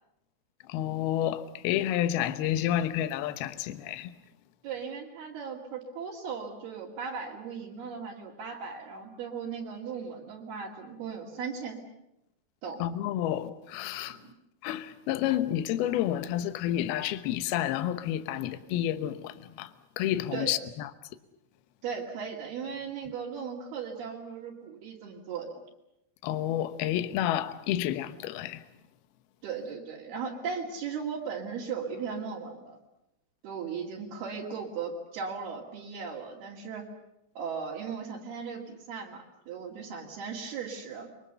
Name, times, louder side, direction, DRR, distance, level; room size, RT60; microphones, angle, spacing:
voice 1, 0.7-4.1 12.8-14.2 14.6-20.9 26.2-28.6, left 12 dB, 75° left, 2.8 m, -30 dB
voice 2, 4.6-11.8 12.6-12.8 14.1-14.2 20.3-20.6 21.8-25.6 29.4-32.8 33.4-36.9 37.4-41.1, right 6 dB, 65° right, 4.5 m, -37 dB
29.0 x 23.5 x 6.9 m
omnidirectional pair, 4.8 m